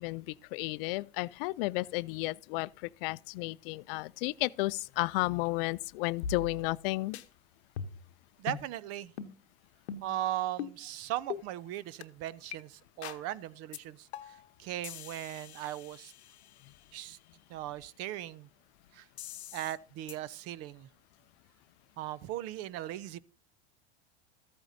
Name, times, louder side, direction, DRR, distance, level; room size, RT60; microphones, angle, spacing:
voice 1, 0.0-7.2, left 22 dB, 60° left, 0.5 m, -33 dB
sound 1, 6.2-6.9 7.1-7.2 7.8-8.1 8.5-8.7 9.2-9.3 9.9-10.2 10.6-10.8 11.3-11.4 12.0-12.1 12.5-12.6 13.0-13.2 13.7-13.8 14.1-14.5 14.8-16.7 19.2-19.8 20.1-20.2, left 7 dB, 85° left, 0.9 m, -41 dB
voice 2, 8.4-9.1 10.0-16.1 16.9-17.2 17.5-18.5 18.9-19.1 19.5-20.9 22.0-23.2, right 13 dB, 50° right, 0.6 m, -38 dB
14.0 x 8.8 x 2.7 m
hypercardioid pair, 95°, 32 cm